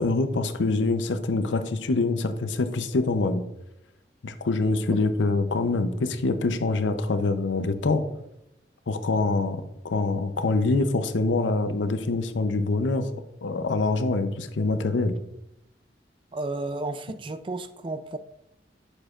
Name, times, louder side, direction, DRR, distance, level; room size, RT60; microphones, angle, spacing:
voice 1, 0.0-3.4 4.2-8.0 8.9-13.1 13.4-15.2, left 3 dB, 90° left, 9 dB, 0.6 m, -25 dB
voice 2, 16.3-18.2, right 2 dB, 30° right, 11 dB, 0.3 m, -32 dB
7.8 x 6.4 x 2.4 m, 0.83 s
head